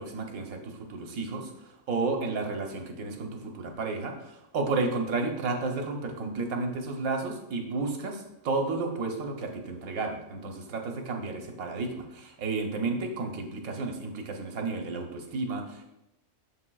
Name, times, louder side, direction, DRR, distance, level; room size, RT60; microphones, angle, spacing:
voice 1, 0.0-1.5 1.9-15.8, right 3 dB, 85° right, 3 dB, 1.3 m, -32 dB
7.2 x 6.5 x 2.3 m, 0.89 s
omnidirectional pair, 1.4 m